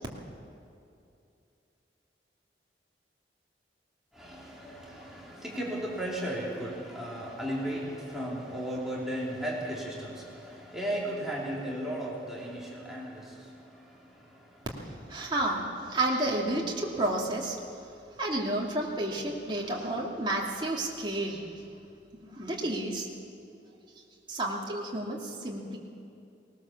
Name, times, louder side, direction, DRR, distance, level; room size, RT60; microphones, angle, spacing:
voice 1, 4.1-13.3, right 1 dB, ahead, -5 dB, 3.3 m, -35 dB
voice 2, 15.1-17.6 18.2-21.4 22.1-23.1 24.3-25.8, right 1 dB, 25° right, -3 dB, 2.5 m, -31 dB
19.5 x 19.0 x 7.2 m, 2.6 s
head